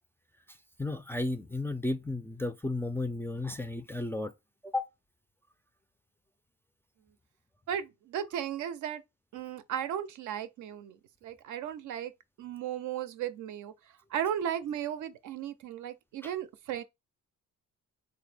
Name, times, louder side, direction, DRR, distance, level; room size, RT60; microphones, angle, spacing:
voice 1, 0.8-4.3 4.6-4.9 16.2-16.3, left 2 dB, 10° left, 0.3 m, -33 dB
voice 2, 7.7-9.0 9.3-12.1 12.4-13.7 14.1-16.8, right 9 dB, 75° right, 0.5 m, -35 dB
3.7 x 2.0 x 3.2 m
cardioid pair, 90°, 30 cm